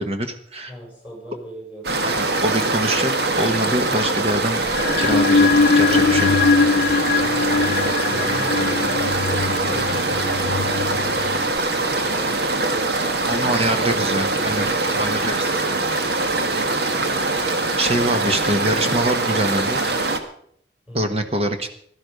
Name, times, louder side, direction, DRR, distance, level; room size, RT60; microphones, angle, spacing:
voice 1, 0.0-0.7 2.0-4.6 5.0-6.3 13.3-14.7 15.0-15.5 17.8-19.8 20.9-21.7, right 1 dB, 35° right, 6 dB, 1.4 m, -24 dB
voice 2, 0.7-2.4 7.2-15.3 20.9-21.2, right 1 dB, 10° right, -2 dB, 6.9 m, -39 dB
sound 1, 1.8-20.2, right 2 dB, 65° right, 1.5 m, -23 dB
sound 2, 4.7-11.6, left 4 dB, 55° left, 0.5 m, -21 dB
16.0 x 12.0 x 5.3 m, 0.65 s
head